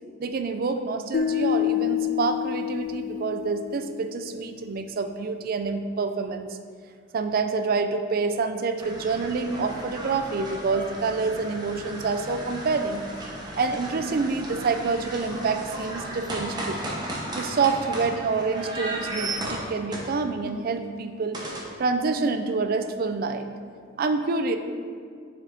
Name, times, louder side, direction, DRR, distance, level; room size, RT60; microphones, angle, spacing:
voice 1, 0.2-6.5 7.1-13.0 13.5-16.8 17.4-21.4 21.8-23.5 24.0-24.6, right 4 dB, 50° right, 8 dB, 0.4 m, -27 dB
sound 1, 1.1-4.3, left 10 dB, 45° left, 0.3 m, -28 dB
sound 2, 8.8-20.5 21.3-21.6, right 1 dB, 20° right, 0.9 m, -35 dB
7.3 x 4.1 x 3.4 m, 2.1 s
head